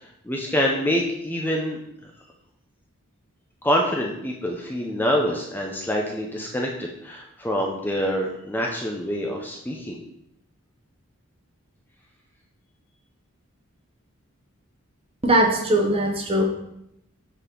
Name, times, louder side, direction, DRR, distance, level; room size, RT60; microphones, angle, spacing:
voice 1, 0.3-1.8 3.6-10.0, equal, 10° left, 0 dB, 0.5 m, -26 dB
voice 2, 15.2-16.4, right 1 dB, 25° right, 3 dB, 0.8 m, -20 dB
8.2 x 4.1 x 3.7 m, 0.79 s
head